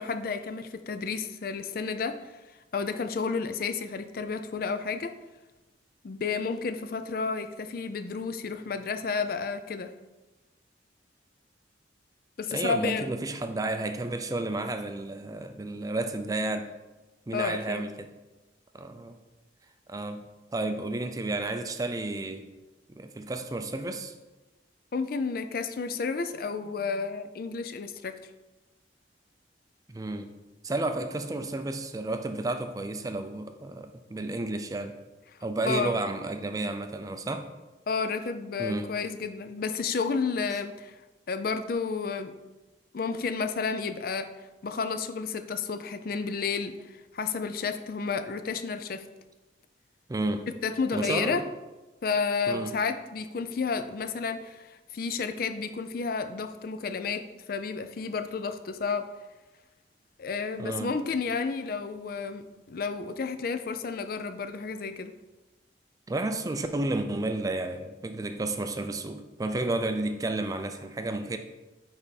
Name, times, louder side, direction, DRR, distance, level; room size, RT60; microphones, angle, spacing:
voice 1, 0.0-2.3 2.7-5.1 6.0-9.9 12.4-13.1 17.3-17.8 24.9-28.2 35.7-36.0 37.9-41.0 41.3-42.3 42.9-44.3 44.6-49.1 50.6-51.4 52.0-59.1 60.2-65.1, left 5 dB, 50° left, 9 dB, 0.4 m, -31 dB
voice 2, 12.5-16.7 17.3-18.1 18.7-19.2 19.9-20.2 20.5-22.5 22.9-24.1 29.9-30.3 30.6-35.0 35.4-37.5 38.6-38.9 50.1-50.5 50.9-51.4 52.5-52.8 60.6-60.9 66.1-71.4, right 2 dB, 20° right, 8 dB, 0.4 m, -31 dB
9.9 x 3.4 x 4.1 m, 1.1 s
head